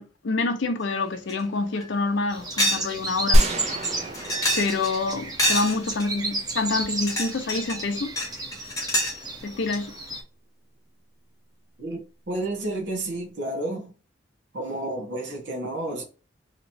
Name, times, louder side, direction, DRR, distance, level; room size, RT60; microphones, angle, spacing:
voice 1, 0.0-3.5 4.6-8.1 9.4-9.9, left 3 dB, 85° left, 0.5 m, -27 dB
sound 1, 1.3-1.4 1.8-1.9 2.6-2.9 3.2-3.3 3.8-5.0 5.4-6.1 6.8-7.8 8.2-9.2, equal, 20° left, 0.9 m, -26 dB
sound 2, 2.3-10.2, right 2 dB, 20° right, 0.9 m, -33 dB
sound 3, 3.3-6.2, equal, 35° right, 0.5 m, -25 dB
voice 2, 12.3-13.9 14.5-16.0, right 1 dB, 75° right, 1.1 m, -30 dB
3.0 x 2.8 x 2.6 m
head